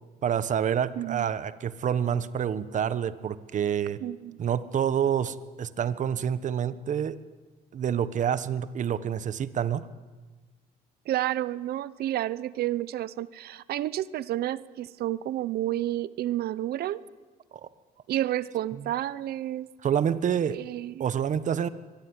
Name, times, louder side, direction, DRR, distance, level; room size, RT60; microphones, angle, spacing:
voice 1, 0.2-4.0 4.4-7.2 7.7-9.9 19.8-20.6 21.0-21.7, right 8 dB, 45° right, 14 dB, 1.4 m, -27 dB
voice 2, 1.0-1.3 4.0-4.4 11.1-17.0 18.1-19.7 20.5-21.1, right 13 dB, 70° right, 18 dB, 0.9 m, -30 dB
23.5 x 22.5 x 9.9 m, 1.3 s
cardioid pair, 110°, 17 cm